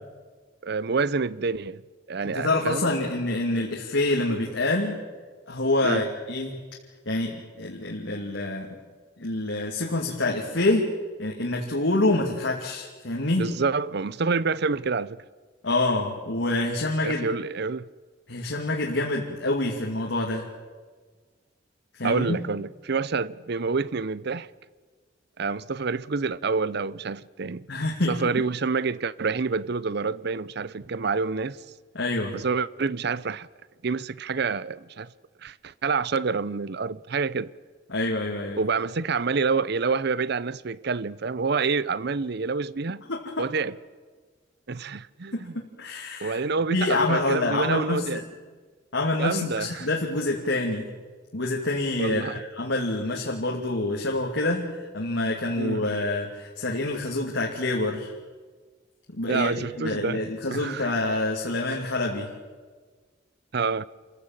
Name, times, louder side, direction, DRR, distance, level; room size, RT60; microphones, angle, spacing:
voice 1, 0.6-1.8 2.1-3.1 5.8-6.1 13.4-15.2 17.0-17.9 22.0-24.5 25.4-27.7 28.1-31.6 32.3-33.5 33.8-35.1 35.4-37.5 38.6-43.0 43.4-43.7 44.7-45.5 46.2-48.2 49.2-49.9 52.0-52.4 55.6-55.8 59.3-60.2 60.5-60.9 63.5-63.9, right 4 dB, 60° right, 0.7 m, -27 dB
voice 2, 2.3-5.0 5.5-6.6 7.1-8.8 9.2-10.9 11.2-13.5 15.6-17.3 18.3-20.5 21.9-22.4 27.7-28.2 31.9-32.4 37.9-38.6 43.1-43.4 45.3-46.4 46.7-48.2 48.9-50.9 51.3-58.1 59.1-62.3, left 2 dB, 75° left, 2.6 m, -27 dB
27.5 x 15.5 x 9.0 m
head